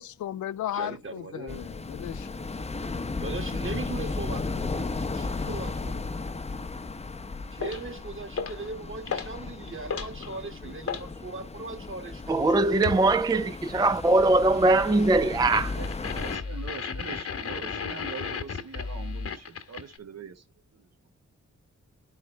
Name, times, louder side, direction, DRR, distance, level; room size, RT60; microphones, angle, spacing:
voice 1, 0.0-2.3, left 11 dB, 85° left, 0.5 m, -35 dB
voice 2, 0.7-1.7 3.2-6.1 7.5-12.5, right 3 dB, 45° right, 1.7 m, -39 dB
sound 1, 1.5-16.4, left 3 dB, 20° left, 0.7 m, -35 dB
sound 2, 7.6-7.9 8.4-8.7 9.1-9.4 9.7-11.1 12.8-13.1 15.5-20.0, left 5 dB, 50° left, 1.1 m, -34 dB
voice 3, 12.3-15.8, right 2 dB, 15° right, 0.4 m, -21 dB
voice 4, 15.7-20.4 20.7-20.9, right 6 dB, 60° right, 1.1 m, -42 dB
10.5 x 4.7 x 3.1 m
cardioid pair, 55°, 29 cm